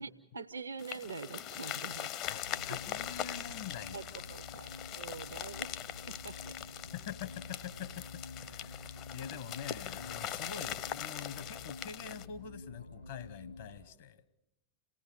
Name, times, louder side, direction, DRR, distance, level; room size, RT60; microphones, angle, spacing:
voice 1, 0.0-2.1 2.6-2.8 3.9-5.8 6.1-6.6, right 4 dB, 75° right, 9 dB, 0.7 m, -45 dB
sound 1, 0.8-12.3, left 11 dB, 40° left, 0.7 m, -42 dB
sound 2, 2.2-13.8, left 3 dB, 80° left, 6.0 m, -49 dB
voice 2, 2.3-4.2 6.9-8.8 9.1-14.2, left 8 dB, 60° left, 14 dB, 1.0 m, -45 dB
27.5 x 17.5 x 6.8 m, 0.92 s
figure-of-eight pair, 90°, 0 cm